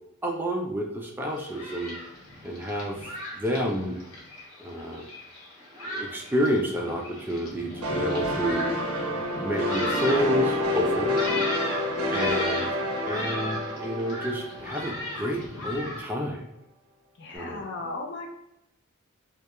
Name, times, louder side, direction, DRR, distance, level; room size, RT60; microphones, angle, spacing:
voice 1, 0.2-2.0 2.4-3.0 3.3-4.0 4.6-5.1 5.7-8.7 9.4-11.2 12.1-12.7 13.0-16.5 17.3-17.6, equal, 10° right, 0 dB, 0.3 m, -29 dB
Thunderstorm, 1.2-16.0, left 1 dB, 80° left, 0.8 m, -36 dB
sound 1, 7.8-15.3, left 1 dB, 80° right, 0.5 m, -28 dB
voice 2, 12.1-12.7 17.2-18.3, left 2 dB, 55° left, 3 dB, 0.4 m, -37 dB
2.2 x 2.1 x 2.8 m, 0.85 s
head